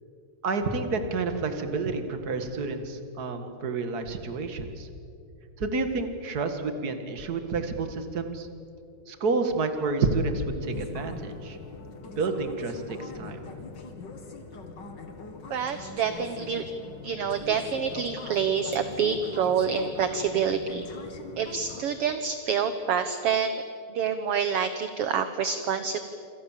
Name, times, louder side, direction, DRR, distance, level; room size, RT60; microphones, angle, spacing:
voice 1, 0.4-4.9 5.6-8.5 9.1-11.6 12.2-13.4, right 3 dB, 35° right, 7 dB, 2.1 m, -29 dB
sound 1, 10.6-21.8, left 4 dB, 40° left, 2.3 m, -42 dB
voice 2, 15.5-16.6 17.0-20.9 21.4-23.6 23.9-26.0, right 7 dB, 60° right, 10 dB, 1.7 m, -27 dB
27.5 x 26.5 x 7.5 m, 2.6 s
omnidirectional pair, 3.4 m